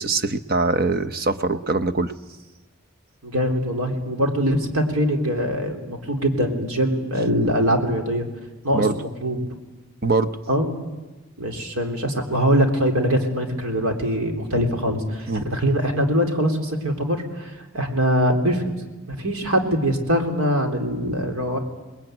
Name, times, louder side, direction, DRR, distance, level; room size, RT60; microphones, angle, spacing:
voice 1, 0.0-2.1 8.7-9.0 10.0-10.3 15.3-15.4, right 3 dB, 45° right, 10 dB, 1.0 m, -22 dB
voice 2, 3.2-8.3 8.6-9.5 10.5-10.9 11.4-18.8 19.1-21.6, equal, 85° right, 3 dB, 3.7 m, -23 dB
28.0 x 21.0 x 9.2 m, 1.2 s
head